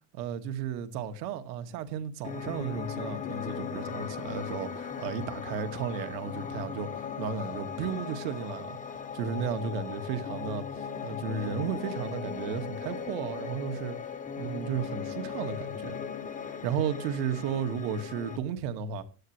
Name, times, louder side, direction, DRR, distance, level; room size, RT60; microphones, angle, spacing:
voice 1, 0.2-8.8 9.1-14.0 14.4-16.0 16.5-19.0, right 7 dB, 90° right, 1.9 m, -34 dB
Piano, 2.2-18.4, left 6 dB, 15° left, 1.1 m, -38 dB
15.5 x 11.0 x 3.2 m
cardioid pair, 155°, 49 cm